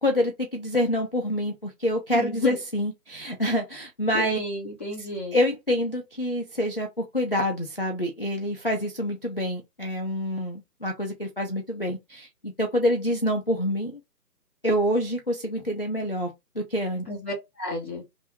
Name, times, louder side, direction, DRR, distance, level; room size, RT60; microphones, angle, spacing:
voice 1, 0.0-4.4 5.0-14.0 14.6-17.1, equal, 35° left, 0.4 m, -27 dB
voice 2, 2.1-2.6 4.1-5.4 17.1-18.0, left 2 dB, 10° left, 0.7 m, -31 dB
3.5 x 2.6 x 4.3 m
hypercardioid pair, 165°, 50 cm